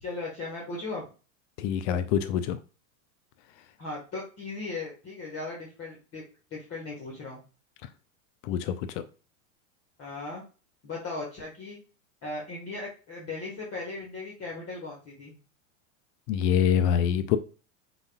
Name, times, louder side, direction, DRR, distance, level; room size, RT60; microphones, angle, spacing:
voice 1, 0.0-1.0 3.8-6.2 6.5-7.4 10.0-10.4 10.8-11.8 12.2-15.4, left 3 dB, 35° left, 1.5 m, -37 dB
voice 2, 1.6-2.6 8.4-9.0 16.3-17.4, left 9 dB, 60° left, 0.5 m, -25 dB
5.1 x 4.0 x 2.3 m
hypercardioid pair, 105°, 41 cm